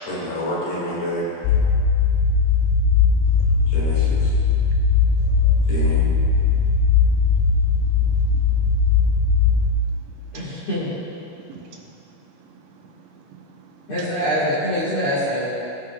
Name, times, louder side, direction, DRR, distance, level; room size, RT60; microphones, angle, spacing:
voice 1, 0.1-1.2 3.6-4.3 5.4-6.1, left 1 dB, 70° left, -6 dB, 4.0 m, -29 dB
sound 1, 1.4-9.7, left 5 dB, 85° left, 3.3 m, -18 dB
voice 2, 10.3-10.9 13.9-15.5, equal, 50° left, -11 dB, 1.6 m, -24 dB
voice 3, 11.3-11.9 12.4-14.1, right 6 dB, 90° right, 0 dB, 3.3 m, -45 dB
19.5 x 6.6 x 2.3 m, 2.6 s
omnidirectional pair, 5.0 m